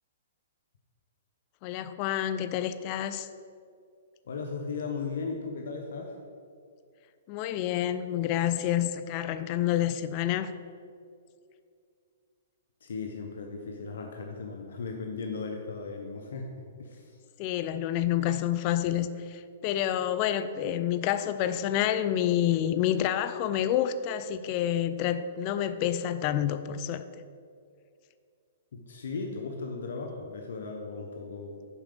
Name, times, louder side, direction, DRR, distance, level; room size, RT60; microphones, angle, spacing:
voice 1, 1.6-3.3 7.3-10.5 17.4-27.0, left 11 dB, 40° left, 12 dB, 0.4 m, -28 dB
voice 2, 4.2-6.2 12.8-16.5 16.8-17.3 28.7-31.7, left 4 dB, 75° left, 2 dB, 0.9 m, -37 dB
7.2 x 4.8 x 6.7 m, 2.3 s
hypercardioid pair, 135°, 0 cm